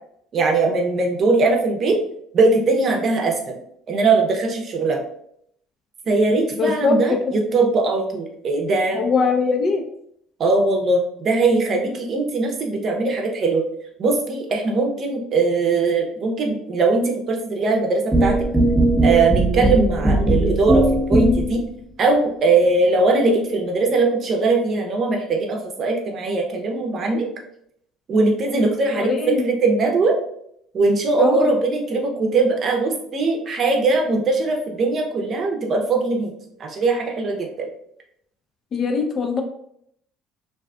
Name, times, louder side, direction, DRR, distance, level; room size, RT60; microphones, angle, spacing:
voice 1, 0.3-2.0 2.3-3.5 3.9-5.0 6.1-9.0 10.4-13.6 14.0-18.4 19.0-21.6 22.0-27.3 28.1-30.2 30.7-36.3 36.6-37.7, right 3 dB, 50° right, 1 dB, 0.6 m, -20 dB
voice 2, 6.6-7.4 8.9-9.8 28.9-29.4 31.2-31.5 38.7-39.4, left 4 dB, 45° left, 4 dB, 0.5 m, -21 dB
sound 1, 18.1-21.6, right 1 dB, 5° right, 0.6 m, -18 dB
2.6 x 2.4 x 2.3 m, 0.70 s
hypercardioid pair, 65°, 0 cm